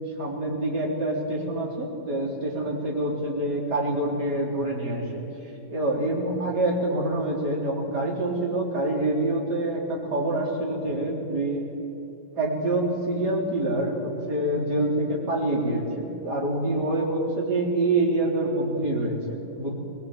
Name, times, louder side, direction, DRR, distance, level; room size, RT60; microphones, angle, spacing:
voice 1, 0.1-5.2 5.7-11.6 12.4-19.8, right 2 dB, 60° right, -2 dB, 4.7 m, -26 dB
21.5 x 20.0 x 8.9 m, 2.9 s
omnidirectional pair, 2.0 m